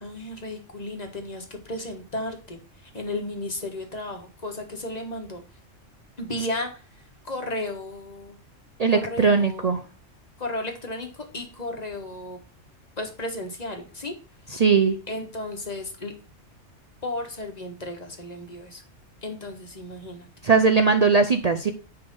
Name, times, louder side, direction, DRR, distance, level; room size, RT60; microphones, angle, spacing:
voice 1, 0.0-5.4 6.2-6.8 7.2-8.4 8.9-9.7 10.4-12.4 13.0-14.1 15.1-16.1 17.0-18.8 19.2-20.3, left 1 dB, 35° left, 4 dB, 1.5 m, -34 dB
voice 2, 8.8-9.8 14.5-15.0 20.4-21.7, right 5 dB, 50° right, 7 dB, 0.5 m, -19 dB
9.7 x 3.4 x 5.2 m, 0.35 s
omnidirectional pair, 1.3 m